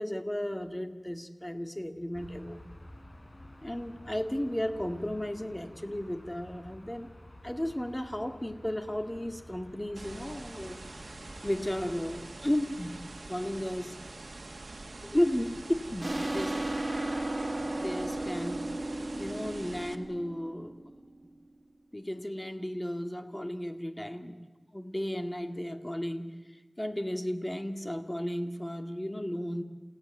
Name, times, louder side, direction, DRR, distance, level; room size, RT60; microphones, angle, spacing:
voice 1, 0.0-2.6 3.6-7.1 7.4-10.8 11.4-13.0 13.3-13.9 15.0-16.6 17.8-20.8 21.9-24.4 24.7-26.3 26.8-29.6, left 1 dB, 20° left, 7 dB, 2.1 m, -34 dB
sound 1, 2.1-12.2, left 1 dB, 50° left, 5.2 m, -51 dB
sound 2, 10.0-20.0, right 2 dB, 75° right, 1.6 m, -45 dB
sound 3, 16.0-21.3, right 1 dB, 45° right, 2.4 m, -35 dB
29.0 x 17.0 x 9.5 m, 1.3 s
wide cardioid pair, 45°, 0 cm